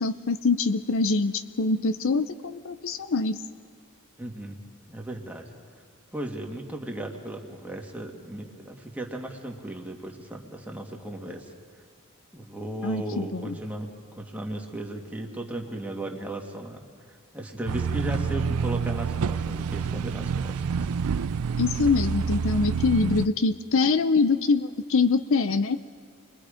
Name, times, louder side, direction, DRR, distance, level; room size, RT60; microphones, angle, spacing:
voice 1, 0.0-3.4 12.8-13.5 21.6-25.8, left 4 dB, 60° left, 11 dB, 0.6 m, -24 dB
voice 2, 4.2-4.6 4.9-5.4 6.1-11.5 12.3-20.9, right 1 dB, 5° right, 0 dB, 2.0 m, -36 dB
sound 1, 17.7-23.3, right 6 dB, 80° right, 0.5 m, -28 dB
29.5 x 22.5 x 5.1 m, 2.2 s
head